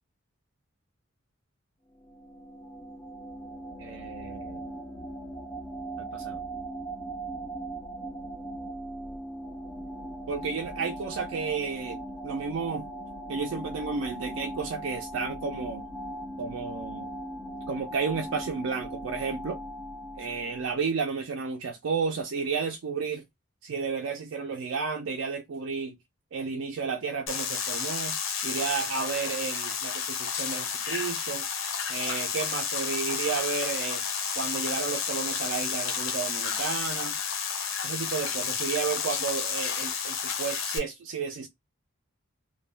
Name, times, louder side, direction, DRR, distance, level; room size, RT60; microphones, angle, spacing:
sound 1, 1.9-20.9, right 1 dB, 15° left, 0.3 m, -39 dB
voice 1, 3.8-4.7 6.0-6.4 10.3-12.9 13.3-15.8 16.4-17.1 17.7-19.6 20.2-23.2 23.6-26.0 26.3-28.2 28.4-31.4 31.9-34.0 34.4-37.2 37.8-41.5, right 5 dB, 70° right, 0.4 m, -32 dB
sound 2, 27.3-40.8, left 7 dB, 65° left, 0.5 m, -31 dB
2.2 x 2.1 x 3.2 m
head